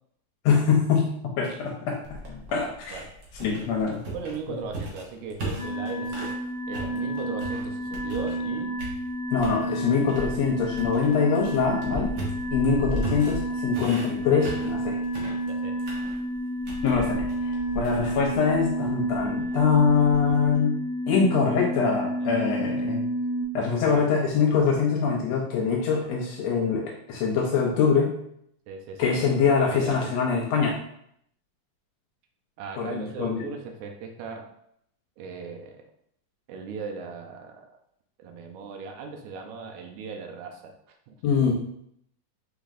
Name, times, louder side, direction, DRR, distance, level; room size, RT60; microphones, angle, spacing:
voice 1, 0.4-3.0 3.4-4.0 9.3-12.1 12.5-15.0 16.8-20.8 21.1-23.1 23.5-28.2 29.0-30.8 32.8-33.5 41.2-41.5, left 5 dB, 75° left, -1 dB, 1.6 m, -24 dB
sound 1, 2.0-6.4 6.7-8.5 8.8-9.6 10.1-20.6, equal, 65° right, 1.1 m, -37 dB
voice 2, 4.1-6.4 6.7-8.7 15.5-15.8 22.2-22.9 23.8-24.1 28.7-30.1 32.6-34.5 35.2-35.8 36.5-37.8 38.2-41.2, right 5 dB, 80° right, 3 dB, 2.0 m, -38 dB
sound 2, 5.6-23.4, right 1 dB, 45° right, 1.8 m, -30 dB
5.1 x 3.9 x 2.4 m, 0.72 s
omnidirectional pair, 3.5 m